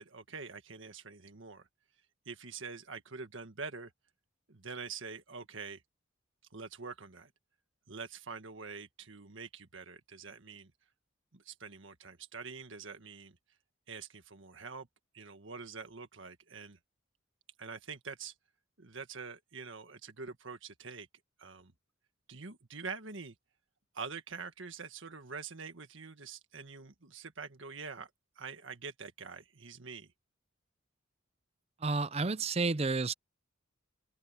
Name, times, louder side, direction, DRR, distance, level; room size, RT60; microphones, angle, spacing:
voice 1, 0.0-1.7 2.3-3.9 4.5-5.8 6.5-7.3 7.9-10.7 11.3-13.4 13.9-14.9 15.1-16.8 17.6-18.3 18.8-21.1 21.4-21.7 22.3-23.3 23.9-28.1 28.4-30.1, right 5 dB, 70° right, 1.6 m, -45 dB
voice 2, 31.8-33.1, right 3 dB, 30° right, 0.5 m, -31 dB
open air
head